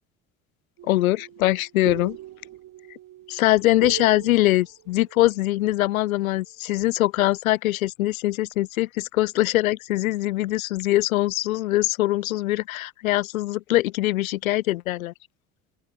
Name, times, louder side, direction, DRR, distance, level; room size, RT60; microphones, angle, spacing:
sound 1, 0.8-6.4, right 14 dB, 45° right, 3.6 m, -41 dB
voice 1, 0.9-2.2 3.3-15.1, left 17 dB, 70° left, 1.2 m, -22 dB
open air
figure-of-eight pair, 60°, 43 cm